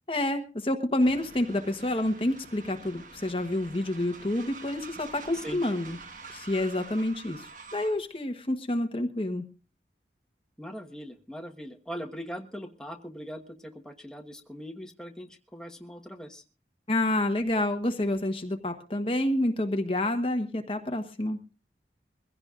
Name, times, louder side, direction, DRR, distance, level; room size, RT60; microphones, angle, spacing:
voice 1, 0.1-6.0 6.3-9.4 16.9-21.4, left 1 dB, 30° left, 5 dB, 1.1 m, -28 dB
Train, 1.0-8.1, right 4 dB, 45° right, 1.4 m, -46 dB
voice 2, 10.6-16.4, equal, 5° left, 2 dB, 1.3 m, -41 dB
23.0 x 16.0 x 2.5 m, 0.33 s
head